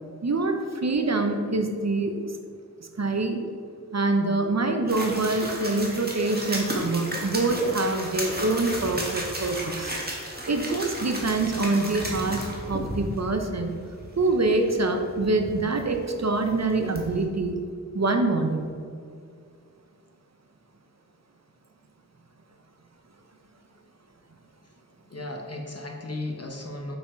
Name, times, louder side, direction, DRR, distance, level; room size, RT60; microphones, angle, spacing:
voice 1, 0.2-2.2 3.0-3.5 3.9-9.9 10.5-12.4 12.7-13.8 14.2-17.6 17.9-18.7, right 2 dB, 55° right, 5 dB, 0.7 m, -25 dB
sound 1, 4.9-17.2, right 1 dB, 30° right, 1.6 m, -34 dB
voice 2, 25.1-27.0, left 2 dB, 50° left, 2 dB, 1.1 m, -35 dB
6.9 x 5.6 x 4.4 m, 2.3 s
wide cardioid pair, 55°, 32 cm